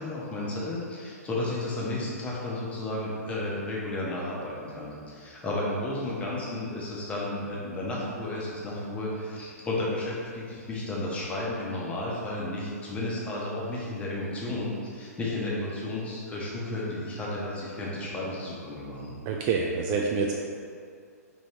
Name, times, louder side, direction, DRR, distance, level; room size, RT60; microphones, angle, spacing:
voice 1, 0.0-19.1, left 1 dB, 15° left, -5 dB, 0.9 m, -33 dB
voice 2, 19.3-20.4, right 5 dB, 30° right, 0 dB, 0.3 m, -27 dB
5.2 x 3.1 x 2.9 m, 2.3 s
figure-of-eight pair, 120°, 9 cm